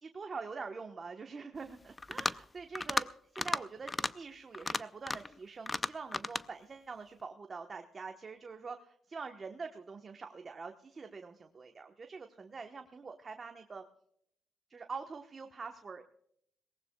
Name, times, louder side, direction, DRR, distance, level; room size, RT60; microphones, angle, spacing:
voice 1, 0.0-3.1 3.3-13.8 14.7-16.0, right 4 dB, 35° right, 5 dB, 1.1 m, -45 dB
sound 1, 2.0-2.4 2.8-3.1 3.4-3.6 3.9-4.1 4.5-5.3 5.7-6.5, left 3 dB, 20° left, 0.5 m, -34 dB
22.0 x 18.5 x 2.3 m, 0.71 s
cardioid pair, 90°, 0 cm